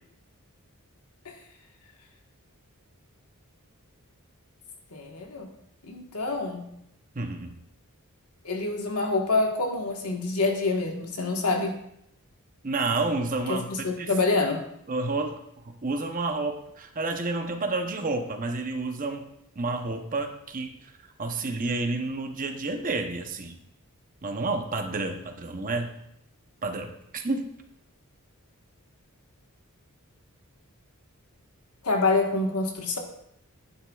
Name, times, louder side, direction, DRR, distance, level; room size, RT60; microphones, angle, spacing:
voice 1, 4.9-5.5 5.8-6.7 8.4-11.8 13.5-14.6 31.8-33.0, left 3 dB, 80° left, 2 dB, 1.5 m, -26 dB
voice 2, 7.1-7.6 12.6-13.7 14.0-14.1 14.9-15.4 15.6-19.3 19.6-20.8 21.2-23.5 24.2-25.9 26.6-27.5, right 3 dB, 35° right, 5 dB, 0.8 m, -30 dB
11.0 x 9.7 x 2.4 m, 0.76 s
head